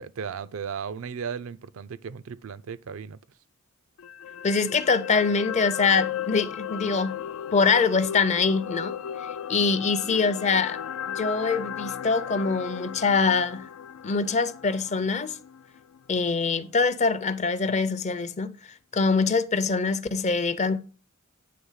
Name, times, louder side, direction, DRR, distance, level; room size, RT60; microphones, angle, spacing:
voice 1, 0.0-3.2, right 6 dB, 75° right, 0.4 m, -35 dB
sound 1, 4.0-16.3 16.6-16.8, left 9 dB, 90° left, 0.4 m, -36 dB
voice 2, 4.4-7.2 7.5-9.0 9.5-10.8 11.1-13.7 14.0-15.4 16.1-18.5 18.9-20.8, left 4 dB, 35° left, 0.5 m, -24 dB
8.5 x 3.4 x 5.5 m
head